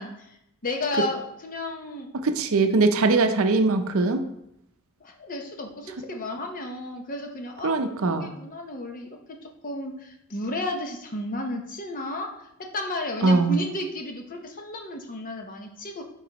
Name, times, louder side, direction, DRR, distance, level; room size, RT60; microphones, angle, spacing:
voice 1, 0.0-2.1 5.0-7.8 8.1-9.4 9.6-12.5 12.7-16.0, left 1 dB, 40° left, 3 dB, 0.8 m, -33 dB
voice 2, 2.2-4.2 7.6-8.3 13.2-13.6, right 3 dB, 65° right, 8 dB, 0.5 m, -21 dB
9.0 x 4.0 x 2.9 m, 0.79 s
head